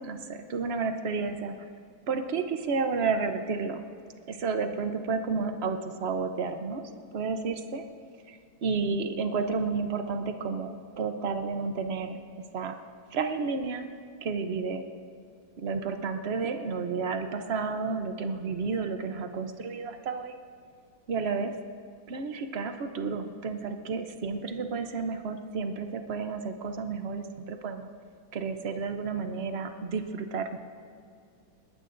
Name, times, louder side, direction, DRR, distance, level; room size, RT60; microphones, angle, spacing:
voice 1, 0.0-1.5 2.1-3.8 4.3-7.8 8.3-12.2 12.5-12.8 13.1-13.9 14.2-14.8 15.6-20.3 21.1-21.6 22.1-27.9 28.3-30.6, right 4 dB, 65° right, 7 dB, 0.6 m, -31 dB
21.5 x 18.5 x 2.6 m, 2.3 s
omnidirectional pair, 2.1 m